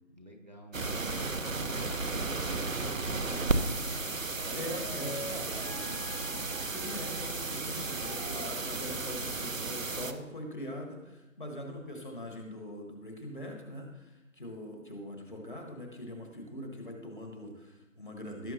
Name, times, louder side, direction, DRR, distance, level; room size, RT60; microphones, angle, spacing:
voice 1, 0.1-4.1 4.4-6.0, equal, 30° right, 2 dB, 1.0 m, -48 dB
sound 1, 0.7-10.1, right 3 dB, 70° right, 1.0 m, -34 dB
sound 2, 1.9-8.5, left 1 dB, 70° left, 3.7 m, -47 dB
voice 2, 4.5-5.2 6.6-18.5, left 1 dB, 40° left, 2 dB, 1.5 m, -42 dB
16.5 x 7.0 x 2.8 m, 0.99 s
figure-of-eight pair, 170°, 41 cm